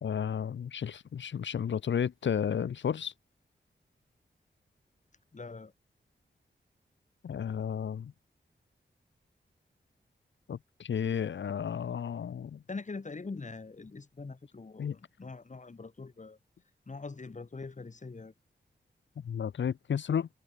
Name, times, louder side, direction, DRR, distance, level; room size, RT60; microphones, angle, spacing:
voice 1, 0.0-3.1 7.2-8.1 10.5-12.6 14.8-14.9 19.2-20.3, left 8 dB, 85° left, 1.0 m, -32 dB
voice 2, 5.3-5.7 12.7-16.4 16.9-18.3, left 3 dB, 40° left, 4.1 m, -43 dB
wide cardioid pair, 95°, 19 cm